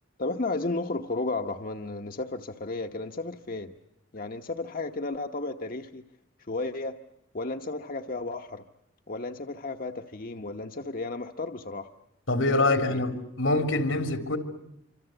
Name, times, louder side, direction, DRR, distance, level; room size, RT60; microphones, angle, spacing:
voice 1, 0.2-3.7 4.1-6.0 6.5-7.0 7.3-8.6 9.1-11.9 12.6-13.1, left 2 dB, 45° left, 5 dB, 1.0 m, -33 dB
voice 2, 12.3-14.4, left 2 dB, 90° left, 7 dB, 3.4 m, -25 dB
27.0 x 25.5 x 8.0 m, 0.82 s
head